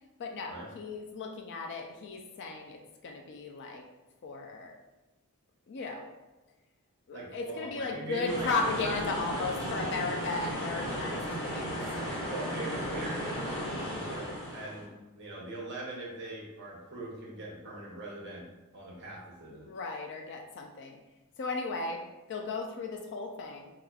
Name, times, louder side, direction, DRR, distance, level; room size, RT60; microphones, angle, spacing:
voice 1, 0.2-3.8 4.2-4.8 5.7-6.1 7.1-11.8 19.5-21.0 21.4-22.0 22.3-23.7, left 3 dB, 55° left, 2 dB, 0.4 m, -35 dB
voice 2, 7.1-8.5 8.8-9.0 9.3-9.4 12.2-13.4 13.6-14.9 15.1-18.5 18.7-19.7, right 2 dB, 55° right, -4 dB, 0.8 m, -41 dB
sound 1, 8.3-14.9, equal, 25° left, 1.4 m, -35 dB
4.8 x 2.4 x 2.3 m, 1.1 s
head